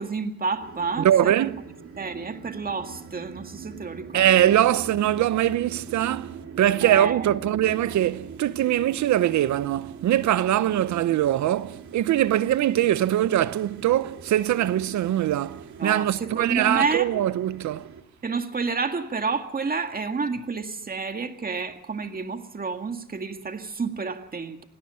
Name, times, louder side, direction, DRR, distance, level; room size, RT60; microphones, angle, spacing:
voice 1, 0.0-1.5 2.0-4.6 6.8-7.3 15.8-17.1 18.2-24.6, right 4 dB, 30° right, 2.0 m, -30 dB
sound 1, 0.6-18.0, right 6 dB, 45° right, 2.3 m, -42 dB
voice 2, 1.0-1.6 4.1-17.9, right 12 dB, 70° right, 0.9 m, -22 dB
27.5 x 17.5 x 5.7 m
cardioid pair, 90°, 30 cm